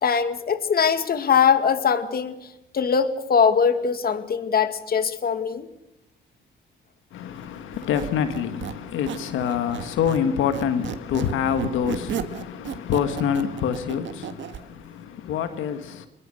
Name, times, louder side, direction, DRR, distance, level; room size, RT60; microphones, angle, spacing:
voice 1, 0.0-5.7, left 6 dB, 50° left, 2.1 m, -22 dB
voice 2, 7.1-16.1, left 8 dB, 85° left, 1.6 m, -26 dB
Squeak, 7.7-10.3 10.5-14.6, right 9 dB, 70° right, 1.8 m, -34 dB
24.0 x 22.0 x 6.5 m
cardioid pair, 90°, 20 cm